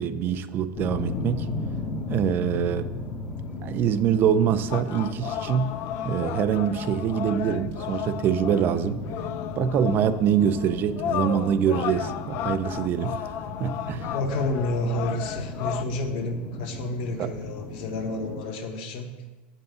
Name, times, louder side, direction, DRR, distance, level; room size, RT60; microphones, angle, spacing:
voice 1, 0.0-1.5 2.1-2.9 3.6-5.8 6.0-9.0 9.6-14.1 17.2-17.3, right 8 dB, 40° right, 0.4 m, -24 dB
sound 1, 0.7-18.4, left 3 dB, 35° left, 1.2 m, -36 dB
voice 2, 2.5-3.0 14.1-19.1, left 1 dB, 70° left, 1.4 m, -30 dB
sound 2, 4.7-15.8, left 10 dB, 50° left, 0.4 m, -34 dB
7.8 x 5.5 x 6.8 m
supercardioid pair, 135°, 5 cm